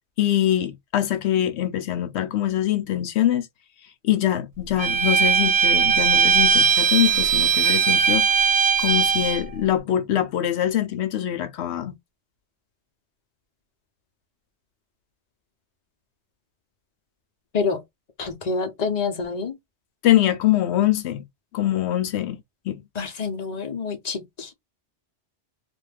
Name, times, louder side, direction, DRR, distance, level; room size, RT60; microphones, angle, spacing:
voice 1, 0.2-3.5 4.0-8.3 8.8-12.0 20.0-21.2 21.5-22.4 22.7-22.8, left 12 dB, 75° left, 0.8 m, -23 dB
Bowed string instrument, 4.8-9.4, right 7 dB, 50° right, 0.4 m, -19 dB
voice 2, 18.2-19.6 22.9-24.5, left 5 dB, 45° left, 0.7 m, -27 dB
2.5 x 2.3 x 3.2 m
omnidirectional pair, 1.2 m